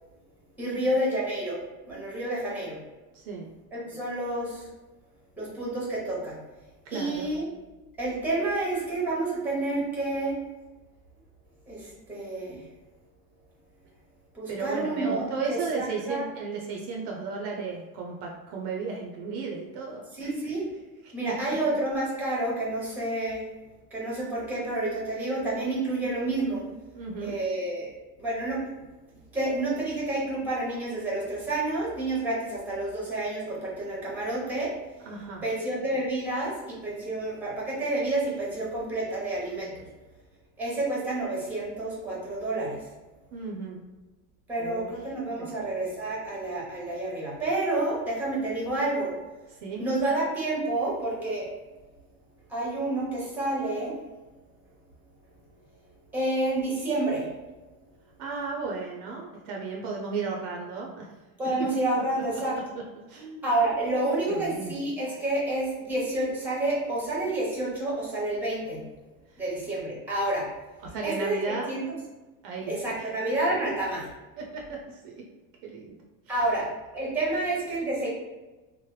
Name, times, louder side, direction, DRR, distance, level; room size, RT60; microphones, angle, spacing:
voice 1, 0.6-1.6 1.9-2.8 3.7-4.7 5.4-6.4 6.9-7.4 8.0-10.4 11.7-12.6 14.3-16.2 20.2-20.6 21.1-23.4 23.9-26.6 27.2-27.9 28.2-28.6 29.3-34.7 35.4-39.9 40.6-42.8 44.5-49.1 49.8-51.5 52.5-54.0 56.1-57.3 61.4-62.5 63.4-68.8 69.4-70.5 71.0-72.0 72.7-74.1 76.3-76.7 76.9-78.1, right 2 dB, 5° right, -5 dB, 0.8 m, -29 dB
voice 2, 3.1-3.5 6.9-7.3 14.5-20.3 21.0-21.1 26.9-27.4 35.0-35.5 43.3-43.8 44.6-44.9 45.4-45.6 49.6-49.8 58.2-61.1 63.1-63.6 64.3-64.7 70.8-71.7 72.4-73.1 74.4-75.1 75.6-76.4, right 4 dB, 55° right, 0 dB, 0.5 m, -35 dB
3.1 x 2.1 x 3.1 m, 1.2 s
supercardioid pair, 145°, 45 cm